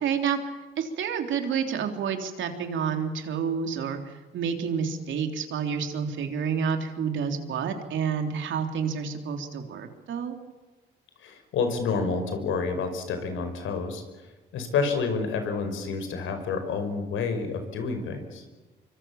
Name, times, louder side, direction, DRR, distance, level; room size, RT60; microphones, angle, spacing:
voice 1, 0.0-0.4 0.8-4.0 4.3-10.4, right 7 dB, 75° right, 5 dB, 3.6 m, -29 dB
voice 2, 11.2-14.0 14.5-18.4, left 4 dB, 80° left, 7 dB, 5.4 m, -29 dB
25.0 x 24.5 x 7.3 m, 1.2 s
cardioid pair, 90°, 20 cm